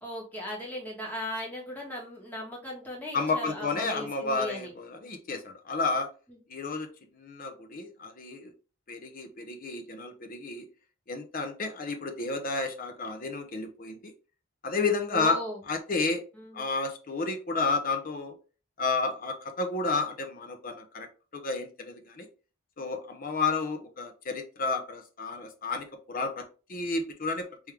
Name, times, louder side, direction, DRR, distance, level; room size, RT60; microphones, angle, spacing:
voice 1, 0.0-4.7 6.3-6.4 15.1-15.6 16.3-16.6, left 1 dB, 10° left, -3 dB, 1.5 m, -37 dB
voice 2, 3.1-6.1 6.5-6.9 7.1-8.5 8.9-10.6 11.1-14.1 14.6-15.4 15.7-16.2 16.5-18.4 18.8-21.1 21.3-22.3 22.8-27.5, left 3 dB, 45° left, 6 dB, 0.7 m, -31 dB
3.6 x 3.1 x 3.4 m, 0.34 s
head